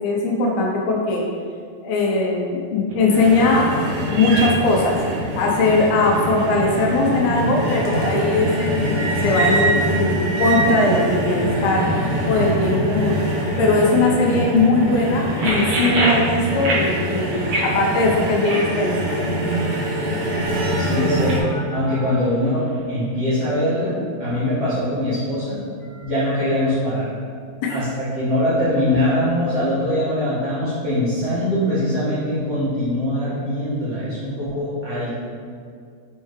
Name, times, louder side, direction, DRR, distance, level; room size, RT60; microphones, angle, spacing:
voice 1, 0.0-1.2 1.8-5.0 5.4-11.9 12.3-13.2 13.6-19.1 27.6-27.7, left 2 dB, 80° left, -1 dB, 2.4 m, -20 dB
sound 1, 2.9-22.8, right 1 dB, 70° right, 1.3 m, -29 dB
sound 2, 3.1-21.4, right 1 dB, 90° right, 2.8 m, -24 dB
sound 3, 19.0-22.1 25.8-26.6, left 1 dB, 45° left, 1.4 m, -35 dB
voice 2, 20.8-25.6 26.0-27.1 27.7-35.3, left 1 dB, 55° right, -11 dB, 2.0 m, -22 dB
5.6 x 5.5 x 3.1 m, 2.2 s
omnidirectional pair, 4.3 m